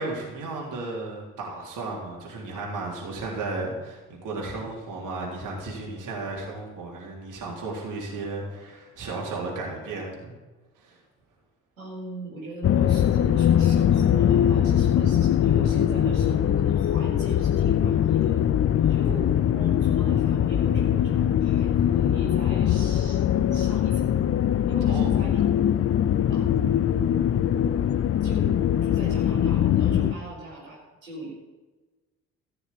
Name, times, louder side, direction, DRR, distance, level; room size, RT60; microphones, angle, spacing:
voice 1, 0.0-10.3 10.8-11.0 18.8-19.1 24.9-25.1 30.1-30.2, right 3 dB, 50° right, -3 dB, 3.8 m, -34 dB
voice 2, 11.8-18.4 18.9-23.2 23.5-24.2 24.7-25.5 26.3-26.9 28.2-28.5 28.8-31.3, right 1 dB, 85° right, -6 dB, 4.4 m, -40 dB
sound 1, 12.6-30.1, left 10 dB, 35° left, 0.7 m, -22 dB
15.0 x 6.9 x 8.6 m, 1.2 s
figure-of-eight pair, 45°, 39 cm